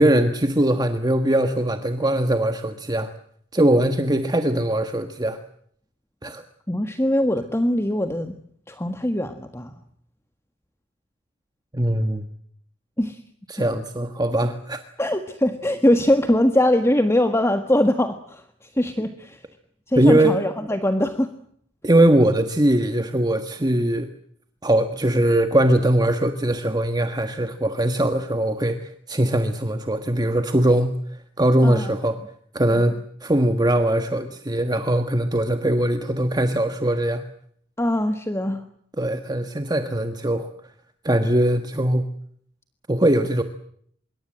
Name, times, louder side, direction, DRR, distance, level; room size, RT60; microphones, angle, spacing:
voice 1, 0.0-3.1 3.5-5.4 6.2-6.4 11.7-12.3 13.5-14.8 20.0-20.4 21.8-24.1 24.6-32.2 32.5-37.2 39.0-40.5 41.0-42.1 42.9-43.4, right 1 dB, 20° right, 8 dB, 1.5 m, -21 dB
voice 2, 6.7-8.4 8.7-9.7 13.0-13.2 15.0-19.4 19.9-21.3 31.6-31.9 32.7-32.9 37.8-38.6, left 1 dB, 15° left, 8 dB, 1.6 m, -22 dB
26.0 x 23.0 x 7.7 m, 0.65 s
head